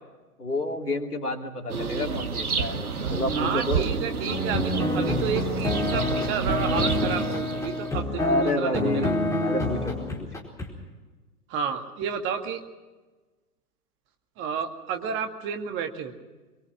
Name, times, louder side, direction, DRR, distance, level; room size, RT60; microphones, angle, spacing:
voice 1, 0.4-2.8 3.1-3.9 8.1-10.3, left 1 dB, 80° left, 4 dB, 2.9 m, -29 dB
sound 1, 1.7-8.0, right 5 dB, 75° right, 1.7 m, -29 dB
voice 2, 3.3-9.1 11.5-12.6 14.4-16.1, right 7 dB, 25° right, 6 dB, 2.1 m, -31 dB
sound 2, 4.3-10.7, left 2 dB, 5° left, 4.5 m, -27 dB
23.5 x 23.0 x 6.1 m, 1.2 s
figure-of-eight pair, 110°, 45 cm